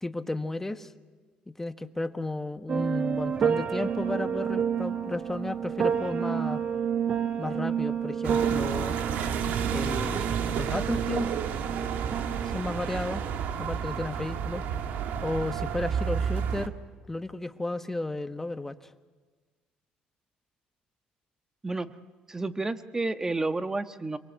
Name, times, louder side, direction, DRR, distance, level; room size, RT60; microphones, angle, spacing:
voice 1, 0.0-0.9 1.6-6.6 7.4-9.0 9.7-10.3 10.5-11.3 12.4-13.2 13.6-14.6 15.2-16.7 17.1-18.9, left 2 dB, 10° left, 9 dB, 1.3 m, -33 dB
sound 1, 2.7-12.6, right 7 dB, 45° right, 1.4 m, -30 dB
sound 2, 8.2-16.7, right 7 dB, 75° right, 1.8 m, -31 dB
voice 2, 22.3-24.2, right 3 dB, 20° right, 9 dB, 1.4 m, -30 dB
28.5 x 22.5 x 8.2 m, 1.4 s
cardioid pair, 95°, 3 cm